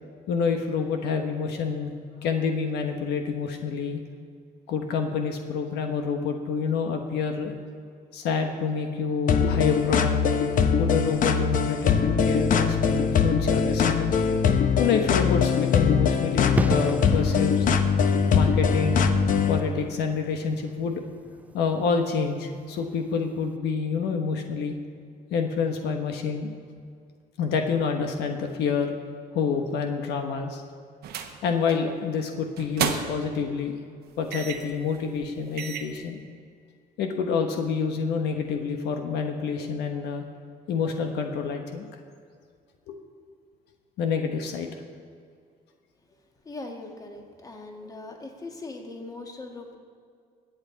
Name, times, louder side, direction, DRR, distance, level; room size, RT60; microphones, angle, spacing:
voice 1, 0.3-1.9 2.2-4.0 4.7-7.5 8.1-10.2 10.7-14.1 14.8-17.7 18.3-19.1 19.5-21.0 21.5-24.8 25.3-26.5 27.4-28.9 29.3-30.6 31.4-33.8 34.2-36.2 37.0-40.2 40.7-41.9 42.9-43.0 44.0-44.7, left 5 dB, 80° left, 4 dB, 1.2 m, -27 dB
sound 1, 9.3-19.6, left 6 dB, 50° left, 0.9 m, -22 dB
sound 2, 16.6-23.1 23.3-23.5, right 2 dB, 10° right, 0.4 m, -34 dB
sound 3, 31.0-31.4 31.7-31.9 32.6-33.3 34.3-34.7 35.2-35.3 35.6-36.0, right 8 dB, 70° right, 1.1 m, -31 dB
voice 2, 46.5-49.8, left 2 dB, 20° left, 2 dB, 1.8 m, -40 dB
22.0 x 8.1 x 4.0 m, 2.2 s
cardioid pair, 110°, 17 cm